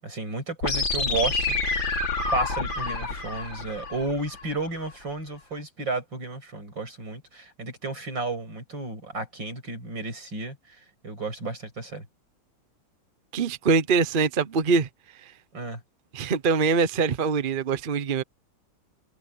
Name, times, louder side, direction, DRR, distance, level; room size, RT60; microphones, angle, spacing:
voice 1, 0.0-1.8 2.3-10.8 11.0-12.0 15.5-15.8, right 3 dB, 75° right, 8.5 m, -32 dB
sound 1, 0.6-4.6, left 3 dB, 90° left, 4.9 m, -28 dB
voice 2, 13.3-14.9 16.1-18.2, right 5 dB, 40° right, 0.8 m, -23 dB
omnidirectional pair, 2.0 m